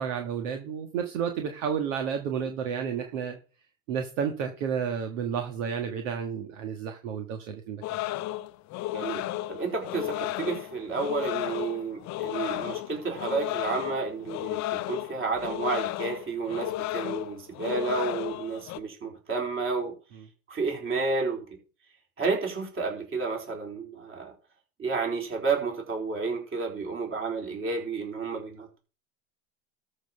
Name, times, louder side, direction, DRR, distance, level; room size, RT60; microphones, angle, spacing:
voice 1, 0.0-3.4 3.9-7.8, right 7 dB, 70° right, 5 dB, 1.8 m, -31 dB
sound 1, 7.8-18.8, left 15 dB, 45° left, 0.7 m, -33 dB
voice 2, 9.5-19.9 20.5-21.4 22.2-24.3 24.8-28.8, right 4 dB, 30° right, 1 dB, 4.4 m, -31 dB
13.0 x 4.5 x 6.6 m, 0.37 s
hypercardioid pair, 95°, 39 cm